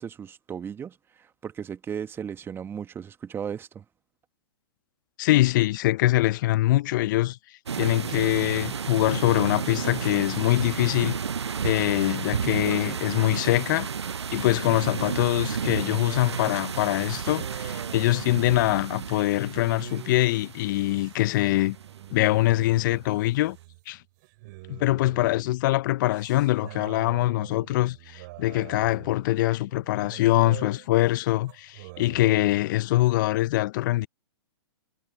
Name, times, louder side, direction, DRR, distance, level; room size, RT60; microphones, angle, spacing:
voice 1, 0.0-3.8, right 7 dB, 15° right, 1.7 m, -36 dB
voice 2, 5.2-7.4 7.7-11.2 11.6-13.9 14.3-21.8 22.1-23.6 23.9-24.0 24.7-34.1, left 17 dB, 45° left, 0.7 m, -23 dB
sound 1, 7.7-22.2, right 6 dB, 90° right, 0.6 m, -32 dB
sound 2, 14.8-24.0 24.2-32.8, right 22 dB, 45° right, 6.2 m, -45 dB
hypercardioid pair, 125°, 14 cm